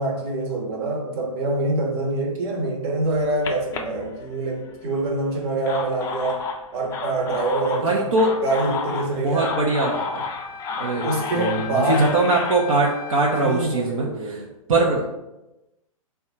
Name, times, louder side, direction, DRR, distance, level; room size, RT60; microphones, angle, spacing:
voice 1, 0.0-6.4 6.7-8.1 8.4-9.5 10.9-12.1 13.4-14.5, right 2 dB, 45° right, 1 dB, 0.9 m, -25 dB
sound 1, 3.0-4.7 5.4-12.6, left 4 dB, 15° left, 0.3 m, -32 dB
voice 2, 7.8-8.3 9.2-10.2 10.8-14.1 14.7-15.1, right 2 dB, 70° right, -2 dB, 0.7 m, -22 dB
Wind instrument woodwind instrument, 9.3-13.8, left 6 dB, 5° right, 0.9 m, -38 dB
3.5 x 2.3 x 4.1 m, 0.96 s
hypercardioid pair, 115°, 18 cm